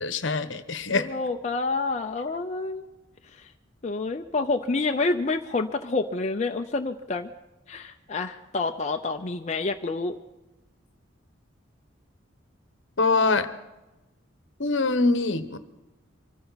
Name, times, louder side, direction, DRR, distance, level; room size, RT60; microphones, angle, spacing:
voice 1, 0.0-1.1 13.0-13.5 14.6-15.6, left 3 dB, 65° left, 11 dB, 1.0 m, -24 dB
voice 2, 0.9-2.8 3.3-3.5 3.8-7.3 7.7-10.2, left 3 dB, 35° left, 3 dB, 0.6 m, -28 dB
25.0 x 14.0 x 4.1 m, 1.0 s
head